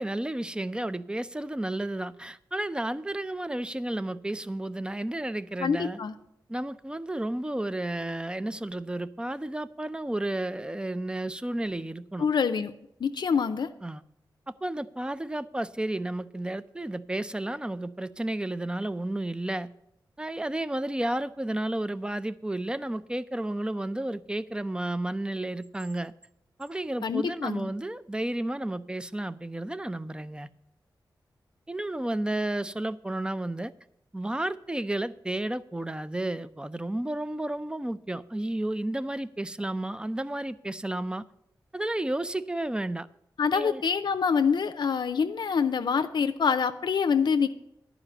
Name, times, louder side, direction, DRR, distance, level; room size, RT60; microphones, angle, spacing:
voice 1, 0.0-6.0 6.5-12.3 13.8-14.0 14.5-19.7 20.2-26.1 26.6-30.5 31.7-33.7 34.1-41.2 41.7-43.1 43.5-43.8, right 1 dB, 10° right, 0.4 m, -32 dB
voice 2, 5.6-6.1 12.2-12.7 13.0-13.7 27.0-27.7 43.4-47.5, left 6 dB, 70° left, 0.5 m, -26 dB
11.0 x 4.9 x 7.9 m
wide cardioid pair, 90°, 8 cm